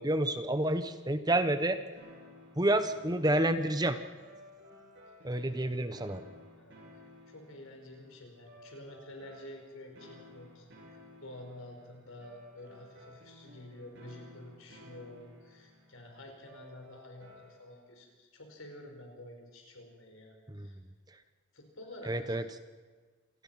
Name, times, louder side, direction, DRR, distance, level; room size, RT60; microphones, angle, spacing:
voice 1, 0.0-1.8 2.6-4.0 5.2-6.2 20.5-20.7 22.1-22.4, right 1 dB, 20° right, 10 dB, 1.0 m, -29 dB
sound 1, 2.0-17.9, left 1 dB, 60° right, 7.6 m, -56 dB
voice 2, 7.3-20.8 21.5-22.5, left 1 dB, 90° left, 3 dB, 5.5 m, -50 dB
27.5 x 18.5 x 5.9 m, 1.4 s
head